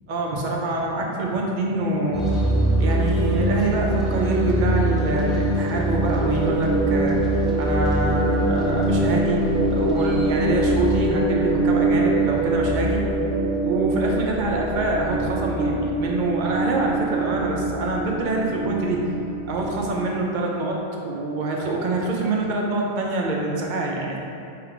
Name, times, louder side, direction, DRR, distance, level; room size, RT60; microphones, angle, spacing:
voice 1, 0.1-2.5 2.8-7.2 7.6-9.4 9.7-13.0 13.6-19.1 19.5-24.2, right 2 dB, 50° right, -1 dB, 0.7 m, -25 dB
sound 1, 2.1-20.2, right 1 dB, ahead, 0.6 m, -23 dB
3.3 x 3.2 x 4.8 m, 2.6 s
omnidirectional pair, 1.1 m